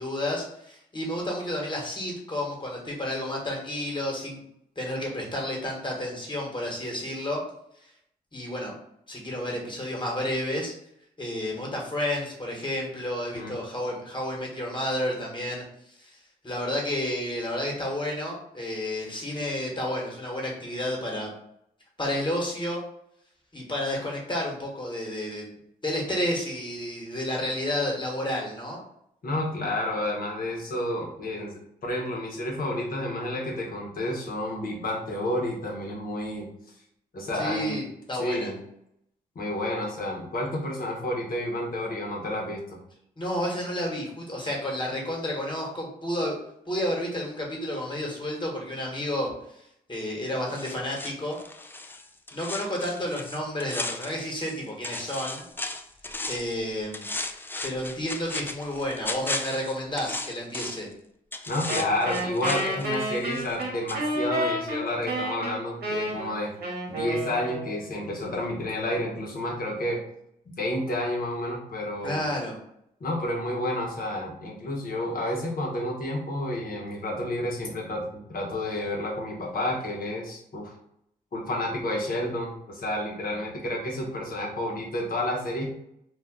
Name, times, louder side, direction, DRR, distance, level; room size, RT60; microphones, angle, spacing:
voice 1, 0.0-4.4 4.8-7.4 8.3-8.7 9.1-10.7 11.2-15.6 16.0-16.2 16.4-21.3 22.0-22.8 23.5-25.5 25.8-28.8 37.3-37.8 38.1-38.5 43.2-46.4 46.7-49.3 49.9-51.4 52.3-55.4 56.3-57.1 57.6-60.9 72.0-72.6, left 1 dB, 30° left, -2 dB, 1.3 m, -31 dB
voice 2, 29.2-36.5 37.1-37.8 38.2-38.6 39.3-42.8 61.5-66.5 66.9-70.0 70.6-72.3 73.0-80.7 81.3-85.7, left 1 dB, 60° left, -2 dB, 1.0 m, -30 dB
sound 1, 50.5-54.6 54.8-56.6 56.9-60.9 61.3-63.6 63.9-64.0, left 2 dB, 10° left, 0.3 m, -36 dB
Wind instrument woodwind instrument, 61.7-68.0, right 1 dB, 70° right, 0.9 m, -30 dB
2.4 x 2.2 x 3.7 m, 0.74 s
supercardioid pair, 45°, 17 cm